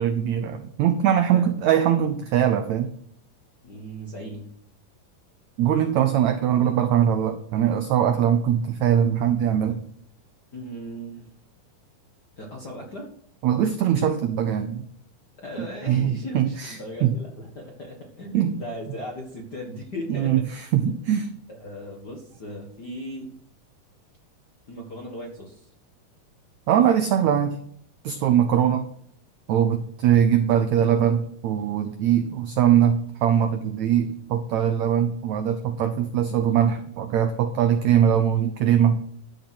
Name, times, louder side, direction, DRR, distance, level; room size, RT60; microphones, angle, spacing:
voice 1, 0.0-2.9 5.6-9.8 13.4-14.8 15.9-16.7 17.0-17.1 18.3-18.5 20.2-20.4 20.7-21.3 26.7-27.6 28.0-28.8 29.5-39.0, right 9 dB, 80° right, 9 dB, 1.6 m, -21 dB
voice 2, 3.6-4.5 10.5-11.3 12.4-13.1 15.4-20.5 21.5-23.3 24.7-25.7 28.5-28.8, equal, 45° left, 1 dB, 1.3 m, -37 dB
13.0 x 6.6 x 6.2 m, 0.66 s
omnidirectional pair, 4.2 m